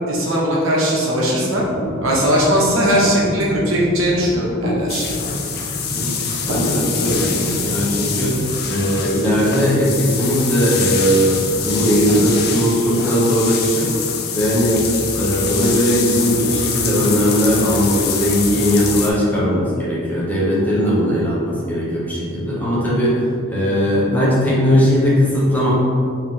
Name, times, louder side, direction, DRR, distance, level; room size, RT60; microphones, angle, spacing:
voice 1, 0.1-1.6 2.0-5.1, equal, 80° right, -5 dB, 1.1 m, -18 dB
sound 1, 1.4-12.3, equal, 45° right, 1.1 m, -29 dB
sound 2, 4.9-19.1, left 6 dB, 50° left, 0.5 m, -25 dB
voice 2, 5.8-6.1 6.4-25.7, equal, 10° left, -7 dB, 1.0 m, -18 dB
4.7 x 3.1 x 3.7 m, 2.4 s
head